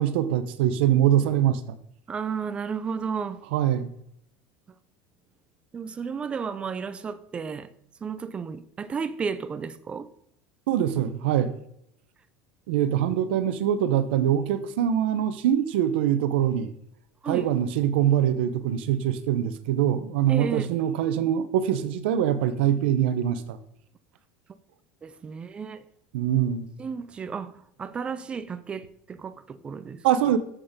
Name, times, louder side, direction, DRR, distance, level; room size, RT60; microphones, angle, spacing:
voice 1, 0.0-1.8 3.5-3.9 10.7-11.5 12.7-16.7 17.3-23.6 26.1-26.7 30.0-30.4, right 10 dB, 85° right, 0.9 m, -23 dB
voice 2, 2.1-3.4 5.7-7.7 8.0-10.1 17.2-17.5 20.3-20.7 25.0-25.8 26.8-30.0, right 6 dB, 20° right, 0.5 m, -33 dB
7.7 x 6.6 x 5.1 m
cardioid pair, 155°, 6 cm